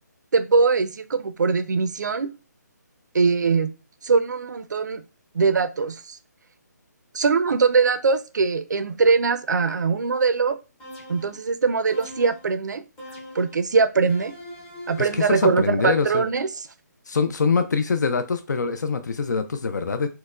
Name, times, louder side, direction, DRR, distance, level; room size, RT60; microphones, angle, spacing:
voice 1, 0.3-2.3 3.1-3.7 4.0-5.0 5.3-6.2 7.1-10.6 11.1-12.8 13.3-14.3 14.9-16.5, right 4 dB, 70° right, 0.5 m, -21 dB
sound 1, 10.8-11.4 11.9-12.5 13.0-13.6 14.1-15.7, left 1 dB, 10° left, 0.5 m, -41 dB
voice 2, 15.0-16.2 17.1-20.1, left 5 dB, 70° left, 0.4 m, -24 dB
4.4 x 2.1 x 2.3 m
hypercardioid pair, 170°, 10 cm